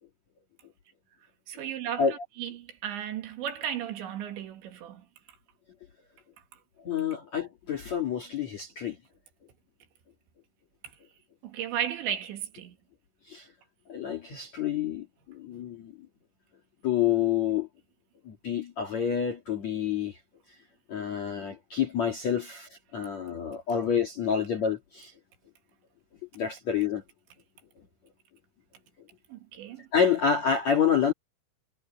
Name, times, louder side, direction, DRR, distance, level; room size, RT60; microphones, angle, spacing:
voice 1, 1.5-5.1 11.4-12.8 29.3-29.9, right 10 dB, 65° right, 3.8 m, -35 dB
voice 2, 6.8-9.0 13.3-13.5 13.9-15.9 16.8-17.7 18.3-20.2 20.9-25.1 26.3-27.0 29.9-31.1, left 7 dB, 55° left, 2.1 m, -28 dB
omnidirectional pair, 6.0 m